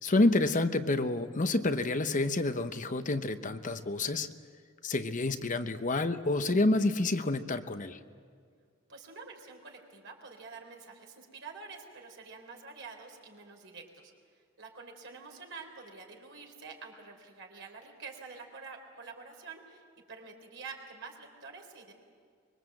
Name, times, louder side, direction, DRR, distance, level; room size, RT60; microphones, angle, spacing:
voice 1, 0.0-4.3 4.8-8.0, left 2 dB, 40° left, 9 dB, 0.8 m, -28 dB
voice 2, 8.9-14.1 14.6-19.8 20.1-21.9, right 4 dB, 60° right, 2 dB, 4.0 m, -47 dB
25.0 x 23.0 x 7.9 m, 2.1 s
head